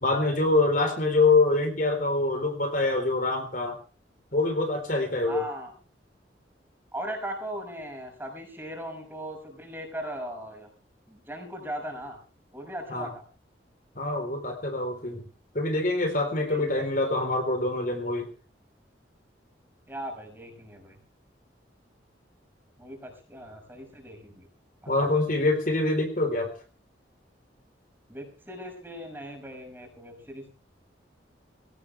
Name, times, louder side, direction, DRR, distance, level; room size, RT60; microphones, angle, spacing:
voice 1, 0.0-3.8 4.3-5.4 12.9-13.1 14.0-15.2 15.5-18.3 24.9-26.5, left 2 dB, 45° left, 5 dB, 4.0 m, -25 dB
voice 2, 5.3-5.7 6.9-10.7 11.1-12.2 12.5-13.2 16.3-16.8 19.9-21.0 22.8-24.5 24.8-25.1 28.1-30.5, right 1 dB, 10° right, 3 dB, 5.7 m, -38 dB
19.5 x 17.5 x 3.4 m, 0.35 s
head